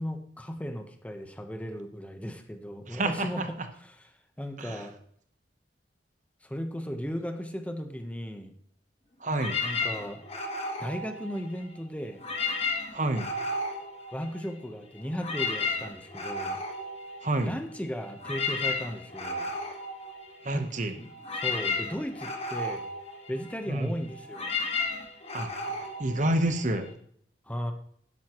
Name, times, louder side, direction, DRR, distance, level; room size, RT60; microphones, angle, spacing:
voice 1, 0.0-3.9 4.4-4.9 6.4-8.5 9.6-10.2 10.8-12.2 14.1-16.6 17.4-19.5 20.5-20.7 21.0-22.8 23.3-24.5 27.5-27.7, equal, 10° left, 6 dB, 1.0 m, -36 dB
voice 2, 2.9-3.5 4.6-4.9 9.2-9.6 12.9-13.3 17.2-17.5 20.4-20.9 23.7-23.9 25.3-25.7 26.0-26.9, right 1 dB, 45° right, 8 dB, 1.1 m, -28 dB
sound 1, 9.3-11.8 12.1-14.7 15.0-26.9, left 3 dB, 35° left, 1.6 m, -34 dB
12.5 x 10.5 x 3.1 m, 0.63 s
head